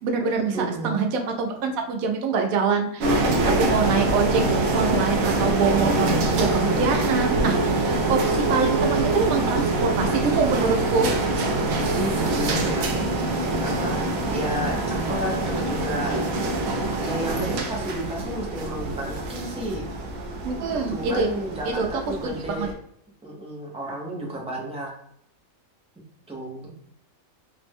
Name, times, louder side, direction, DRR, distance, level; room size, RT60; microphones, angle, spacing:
voice 1, 0.0-4.4 4.7-11.1 20.4-21.3 21.8-21.9 22.2-22.7, right 5 dB, 85° right, 3 dB, 1.0 m, -25 dB
voice 2, 0.5-1.0 11.9-12.9 13.6-14.0 14.3-16.4 17.0-19.9 20.9-22.7 23.2-24.9 26.3-26.7, right 1 dB, 10° right, -2 dB, 0.3 m, -31 dB
sound 1, 3.0-22.7, right 2 dB, 65° right, 0.7 m, -24 dB
3.3 x 2.1 x 3.3 m, 0.70 s
omnidirectional pair, 1.4 m